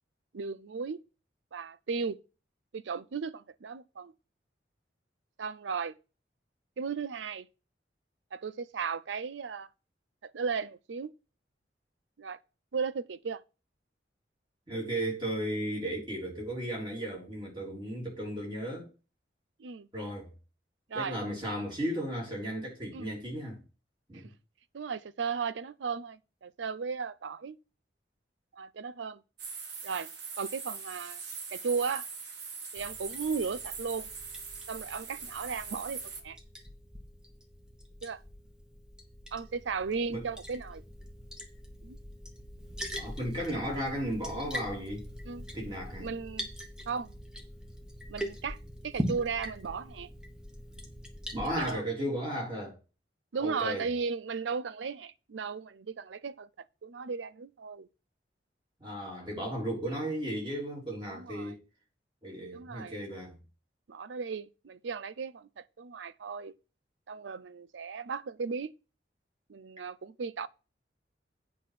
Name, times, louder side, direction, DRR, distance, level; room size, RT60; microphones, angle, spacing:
voice 1, 0.3-1.0 1.5-2.2 2.7-4.1 5.4-6.0 6.8-7.5 8.3-9.7 10.2-11.1 12.2-12.4 12.7-13.4 19.6-19.9 20.9-21.2 22.9-23.1 24.7-27.6 28.5-29.2 29.8-30.1 30.4-31.2 31.5-32.1 32.7-34.1 34.7-36.4 38.0-38.2 39.3-40.8 41.8-42.0 45.3-45.5 46.0-46.5 46.9-47.1 48.1-48.6 48.8-50.1 51.6-51.8 53.3-57.9 61.1-61.5 62.5-63.1 63.9-66.5 67.1-68.7 69.5-70.5, right 5 dB, 90° right, 0.5 m, -36 dB
voice 2, 14.7-18.9 19.9-20.3 20.9-23.6 24.1-24.3 40.1-40.2 43.0-45.1 45.5-46.1 51.3-52.8 53.4-53.9 58.8-61.6 62.2-63.3, equal, 25° right, 3.4 m, -35 dB
sound 1, 29.4-36.2, right 5 dB, 75° right, 1.5 m, -42 dB
Liquid, 32.8-51.7, equal, 5° right, 1.1 m, -42 dB
8.4 x 5.0 x 5.9 m
head